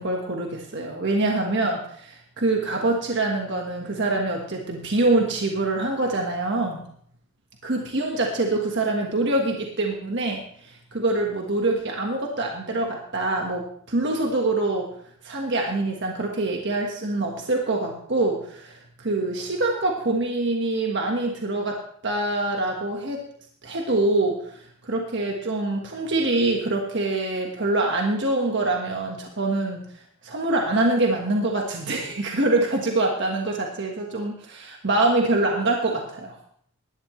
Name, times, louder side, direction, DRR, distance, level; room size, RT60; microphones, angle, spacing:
voice 1, 0.0-6.8 7.6-14.9 15.2-21.8 22.0-23.2 23.6-29.8 30.2-36.4, right 2 dB, 55° right, 1 dB, 1.5 m, -25 dB
17.0 x 11.5 x 3.2 m, 0.63 s
head